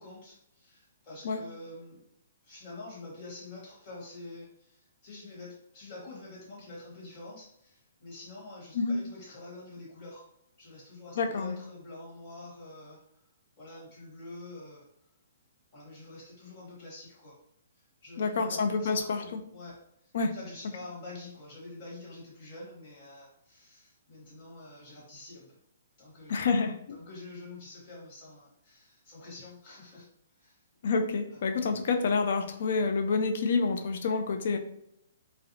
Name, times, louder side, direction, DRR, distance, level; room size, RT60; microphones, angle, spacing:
voice 1, 0.0-2.0 2.4-10.2 10.6-13.0 13.6-14.8 15.7-17.4 17.7-25.5 26.0-26.4 26.9-30.1 30.4-30.6 31.3-31.4, left 2 dB, 35° left, -6 dB, 1.4 m, -47 dB
voice 2, 11.2-11.6 18.2-19.4 20.1-20.3 26.3-27.0 30.8-34.6, left 4 dB, 60° left, 6 dB, 0.3 m, -28 dB
2.6 x 2.0 x 2.7 m, 0.77 s
hypercardioid pair, 155°, 0 cm